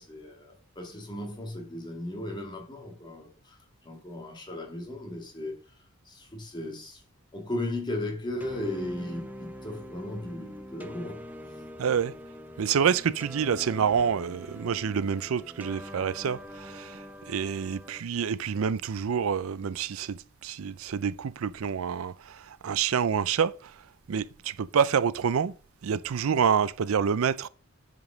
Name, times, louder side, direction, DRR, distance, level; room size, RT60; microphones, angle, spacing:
voice 1, 0.0-3.6 3.8-5.5 6.1-7.0 7.3-11.2, left 1 dB, 20° left, 2.2 m, -36 dB
sound 1, 8.4-18.0, equal, 10° right, 0.7 m, -44 dB
voice 2, 11.8-12.1 12.6-23.7 24.1-25.5 25.8-27.5, right 7 dB, 75° right, 0.4 m, -27 dB
7.8 x 5.2 x 6.2 m
head